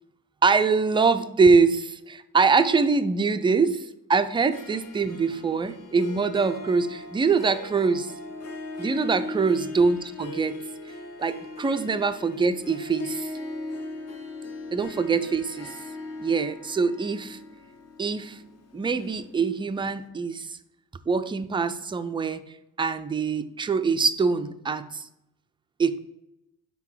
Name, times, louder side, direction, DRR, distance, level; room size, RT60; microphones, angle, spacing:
voice 1, 0.4-3.8 4.1-8.1 8.8-10.6 11.2-13.3 14.7-15.8 16.2-17.4 18.0-18.4 18.7-20.6 21.1-22.4 22.8-25.1 25.8-26.0, right 4 dB, 15° right, 10 dB, 0.3 m, -24 dB
Harp, 4.3-19.7, left 2 dB, 45° left, 0.9 m, -39 dB
5.3 x 3.9 x 4.6 m, 0.87 s
supercardioid pair, 55°, 38 cm